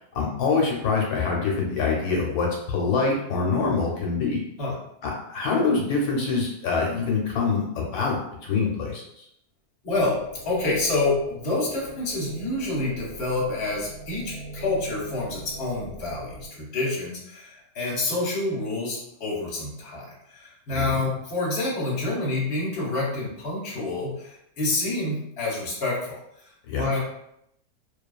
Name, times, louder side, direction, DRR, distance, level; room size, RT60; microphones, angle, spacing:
voice 1, 0.1-4.4 5.0-9.0 20.7-21.1 26.7-26.9, left 4 dB, 85° left, -1 dB, 1.1 m, -25 dB
voice 2, 9.8-10.2 10.4-26.2 26.7-27.0, left 2 dB, 45° left, -4 dB, 1.0 m, -28 dB
sound 1, 9.9-16.5, right 2 dB, 90° right, 1.1 m, -42 dB
2.6 x 2.3 x 2.3 m, 0.76 s
omnidirectional pair, 1.6 m